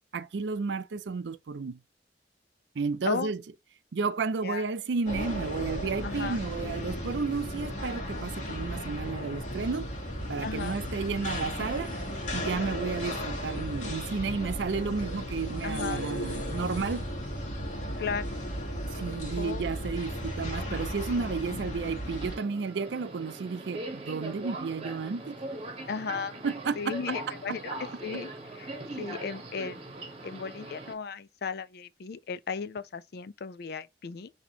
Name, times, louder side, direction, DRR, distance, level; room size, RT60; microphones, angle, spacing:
voice 1, 0.1-1.8 2.8-3.4 3.9-9.9 10.3-12.0 12.3-17.0 18.9-25.4 26.4-26.8, right 4 dB, 75° right, 0.5 m, -32 dB
sound 1, 5.1-22.4, equal, 45° left, 1.5 m, -35 dB
voice 2, 6.0-6.4 10.4-10.8 15.6-16.0 18.0-18.3 19.4-19.7 21.5-21.7 25.9-26.4 26.8-28.3 28.5-28.7 29.0-34.3, left 5 dB, 60° left, 0.4 m, -35 dB
Subway metro underground, 22.0-30.9, right 2 dB, 35° right, 1.0 m, -41 dB
6.0 x 2.9 x 2.8 m
head